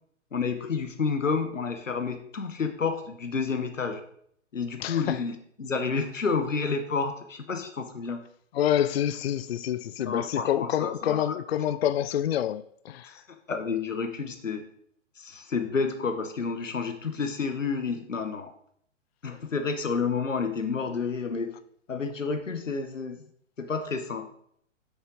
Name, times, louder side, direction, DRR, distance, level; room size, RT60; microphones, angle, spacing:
voice 1, 0.3-4.0 4.5-8.2 10.0-11.4 13.0-13.1 13.5-14.7 15.2-18.5 19.2-21.5 21.9-23.2 23.6-24.3, left 5 dB, 80° left, 1.1 m, -30 dB
voice 2, 4.8-5.2 8.5-13.1, left 10 dB, 55° left, 0.5 m, -27 dB
8.0 x 6.4 x 3.9 m
figure-of-eight pair, 115°, 38 cm